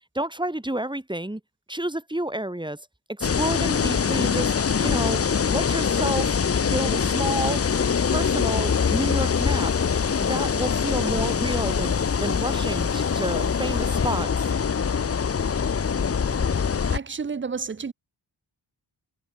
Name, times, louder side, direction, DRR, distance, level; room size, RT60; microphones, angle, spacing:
voice 1, 0.1-1.4 1.7-6.3 6.7-7.6 8.1-9.7 10.2-14.5, right 1 dB, 10° right, 3.3 m, -30 dB
sound 1, 3.2-17.0, left 6 dB, 30° left, 0.6 m, -24 dB
sound 2, 4.1-17.0, left 5 dB, 55° left, 3.7 m, -45 dB
sound 3, 7.1-14.2, left 6 dB, 80° left, 8.0 m, -50 dB
voice 2, 16.9-17.9, right 5 dB, 25° right, 0.7 m, -30 dB
wide cardioid pair, 105°, 46 cm